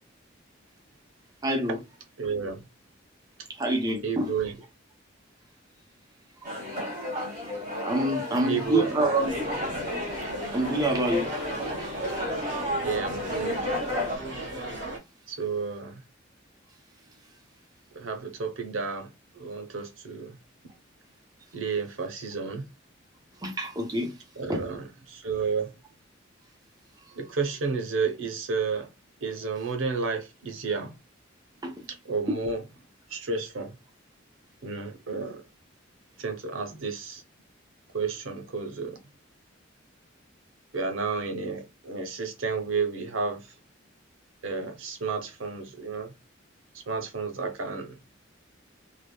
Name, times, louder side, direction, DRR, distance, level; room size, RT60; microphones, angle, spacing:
voice 1, 1.4-1.8 3.6-4.3 7.8-9.3 10.5-11.3 23.4-24.1 24.5-24.6 31.6-31.7 32.3-32.4, right 1 dB, 20° right, 0.6 m, -26 dB
voice 2, 2.2-2.6 4.0-4.6 8.3-9.4 9.7-9.8 12.8-13.7 15.3-16.0 17.9-19.1 19.3-20.4 21.5-22.7 24.4-25.7 27.2-28.9 29.2-30.9 32.1-32.7 33.1-33.7 34.6-35.4 36.2-37.2 37.9-39.0 40.7-43.4 44.4-46.1 46.9-48.0, right 5 dB, 90° right, 0.7 m, -31 dB
sound 1, 6.4-14.2, left 1 dB, 40° right, 1.4 m, -32 dB
sound 2, 9.2-15.0, right 2 dB, 65° right, 1.3 m, -38 dB
3.3 x 2.0 x 2.2 m
head